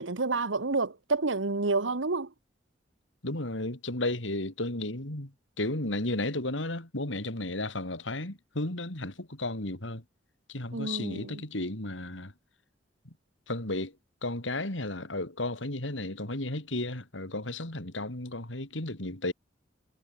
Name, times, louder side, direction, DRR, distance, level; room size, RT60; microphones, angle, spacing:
voice 1, 0.0-2.3 10.7-11.4, right 3 dB, 90° right, 1.3 m, -29 dB
voice 2, 3.2-10.0 10.5-12.3 13.0-13.1 13.5-14.0 14.2-19.3, left 2 dB, 80° left, 3.9 m, -33 dB
head